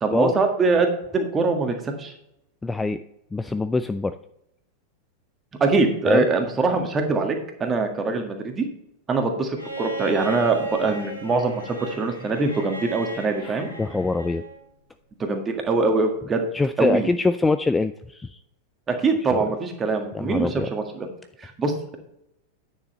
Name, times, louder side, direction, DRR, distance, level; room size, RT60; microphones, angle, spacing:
voice 1, 0.0-2.1 5.6-8.7 9.1-13.7 15.2-16.5 16.8-17.1 18.9-21.1 21.4-22.0, right 3 dB, 20° right, 4 dB, 1.6 m, -23 dB
voice 2, 2.6-3.0 3.3-4.1 6.0-6.3 13.4-14.4 16.5-18.4 19.3-19.5 20.1-20.7, left 3 dB, 10° left, 13 dB, 0.3 m, -24 dB
Bowed string instrument, 9.6-14.6 16.1-16.2, right 3 dB, 90° left, 2.2 m, -35 dB
9.4 x 6.7 x 4.1 m, 0.80 s
figure-of-eight pair, 90°, 0 cm